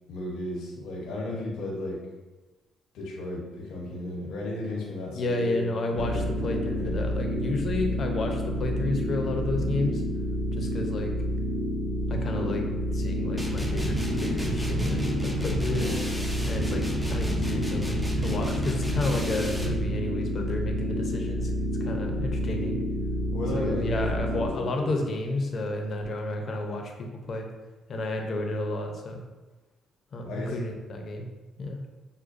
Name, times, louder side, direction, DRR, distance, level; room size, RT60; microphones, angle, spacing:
voice 1, 0.1-2.0 2.9-5.7 6.0-7.1 15.7-16.0 23.3-24.9 30.2-30.6, left 1 dB, 85° left, -3 dB, 0.9 m, -34 dB
voice 2, 5.1-10.0 10.5-11.1 12.1-12.6 12.9-15.8 16.5-21.5 21.8-22.8 23.5-27.5 27.9-29.2 30.1-31.3 31.6-31.8, left 2 dB, 50° left, 3 dB, 0.6 m, -31 dB
sound 1, 5.9-24.5, equal, 85° right, 0.8 m, -29 dB
sound 2, 13.4-19.8, equal, 10° right, 0.5 m, -33 dB
6.0 x 2.2 x 2.6 m, 1.2 s
cardioid pair, 90°, 0 cm